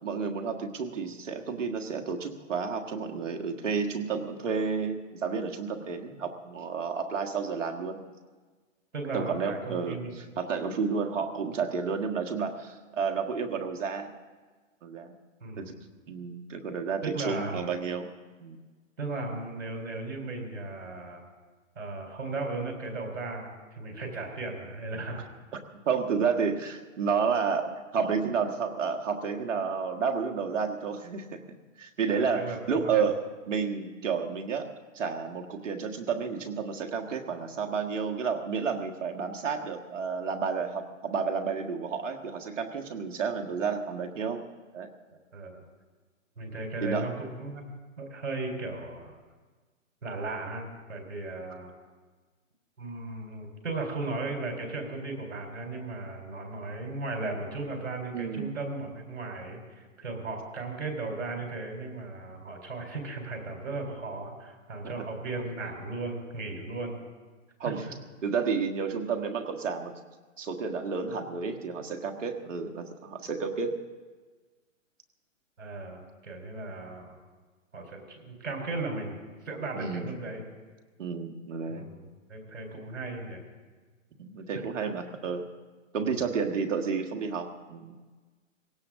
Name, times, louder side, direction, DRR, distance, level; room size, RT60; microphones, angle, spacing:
voice 1, 0.0-8.0 9.1-10.0 10.4-14.1 14.8-15.1 15.6-15.7 16.1-18.1 18.4-18.6 25.8-31.4 31.8-33.2 33.5-34.7 34.9-44.4 44.7-44.9 46.8-47.1 58.1-58.6 64.8-64.9 67.6-67.9 68.2-69.9 70.4-73.7 79.7-80.1 81.0-81.9 84.2-85.4 85.9-88.0, right 5 dB, 70° right, 4 dB, 1.7 m, -31 dB
voice 2, 8.9-10.2 15.4-15.8 17.0-17.6 19.0-21.2 21.8-25.3 32.1-32.9 45.1-45.6 46.4-49.1 50.0-51.7 52.8-67.0 67.6-67.9 75.6-77.2 77.7-79.1 79.4-80.5 81.7-83.4 84.5-84.6 86.0-86.3, right 2 dB, 85° right, 1 dB, 4.2 m, -36 dB
19.5 x 17.0 x 3.7 m, 1.4 s
hypercardioid pair, 150°, 39 cm